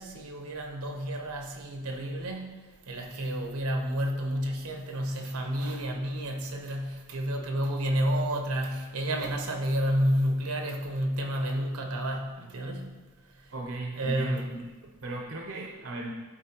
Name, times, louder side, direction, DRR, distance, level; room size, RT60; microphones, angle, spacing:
voice 1, 0.0-2.6 2.9-12.9 13.4-13.5 14.0-14.5, equal, 85° right, 2 dB, 1.0 m, -30 dB
voice 2, 13.5-16.1, right 2 dB, 60° right, 0 dB, 0.7 m, -37 dB
11.5 x 4.5 x 2.9 m, 1.3 s
head